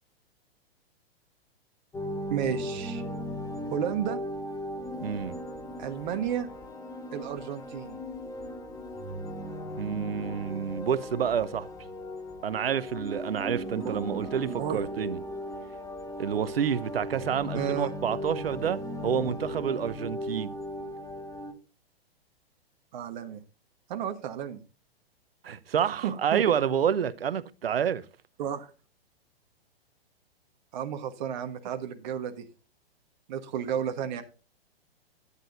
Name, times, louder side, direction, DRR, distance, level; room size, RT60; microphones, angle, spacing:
sound 1, 1.9-21.5, left 1 dB, 10° left, 2.0 m, -37 dB
voice 1, 2.3-3.0 3.7-4.2 5.8-6.5 7.1-8.0 13.8-14.8 17.5-17.9 22.9-23.4 23.9-24.6 26.0-26.4 28.4-28.7 30.7-32.5 33.3-34.2, right 9 dB, 50° right, 1.3 m, -32 dB
voice 2, 5.0-5.4 9.8-11.7 12.4-15.2 16.2-20.5 25.4-28.0, right 8 dB, 70° right, 1.0 m, -29 dB
13.0 x 10.0 x 2.6 m
figure-of-eight pair, 115°, 31 cm